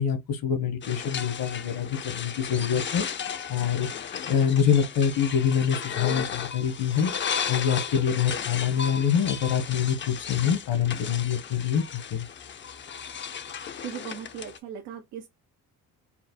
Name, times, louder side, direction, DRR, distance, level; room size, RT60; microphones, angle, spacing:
voice 1, 0.0-3.1 3.5-12.2, left 8 dB, 70° left, 1.2 m, -25 dB
sound 1, 0.8-14.6, left 7 dB, 30° left, 0.5 m, -35 dB
voice 2, 13.5-15.3, right 9 dB, 85° right, 0.8 m, -39 dB
4.4 x 2.1 x 4.2 m
cardioid pair, 95°, 36 cm